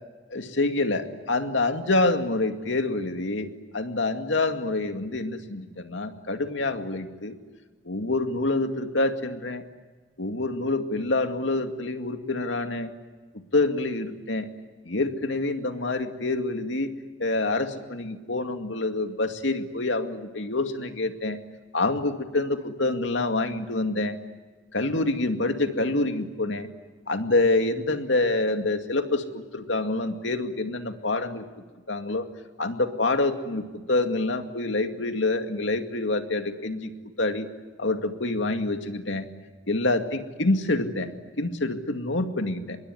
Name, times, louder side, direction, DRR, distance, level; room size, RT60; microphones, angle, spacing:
voice 1, 0.3-3.5 3.7-7.4 7.8-9.6 10.2-12.9 13.3-14.5 14.9-16.9 17.2-21.4 21.7-24.2 24.7-26.7 27.1-31.4 31.9-32.2 32.6-36.9 37.2-37.5 37.8-39.3 39.7-42.8, left 2 dB, 85° left, 6 dB, 2.3 m, -26 dB
26.0 x 22.0 x 9.8 m, 1.4 s
head